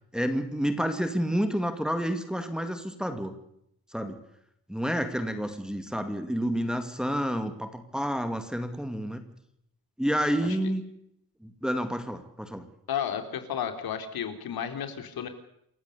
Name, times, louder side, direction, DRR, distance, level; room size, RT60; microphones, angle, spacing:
voice 1, 0.1-3.3 3.9-4.2 4.7-9.2 10.0-10.8 11.4-12.7, equal, ahead, 7 dB, 2.2 m, -29 dB
voice 2, 12.9-15.3, left 8 dB, 75° left, 8 dB, 3.7 m, -32 dB
28.5 x 15.5 x 6.8 m, 0.75 s
wide cardioid pair, 170°, 37 cm